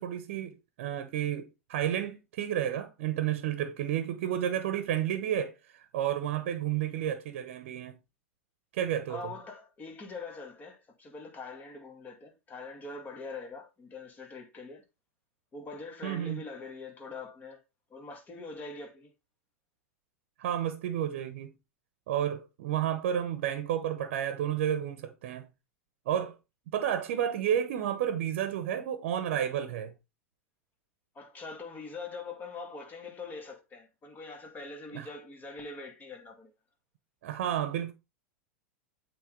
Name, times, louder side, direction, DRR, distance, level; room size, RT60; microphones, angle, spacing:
voice 1, 0.0-8.0 8.7-9.3 16.0-16.4 20.4-21.5 22.1-25.5 26.1-26.4 26.7-29.9 34.9-35.1 37.2-37.9, right 10 dB, 65° right, 0.9 m, -31 dB
voice 2, 9.1-14.8 15.5-17.6 17.9-19.1 31.1-36.5, left 3 dB, 25° left, 2.1 m, -43 dB
8.3 x 3.7 x 3.8 m
hypercardioid pair, 100°, 7 cm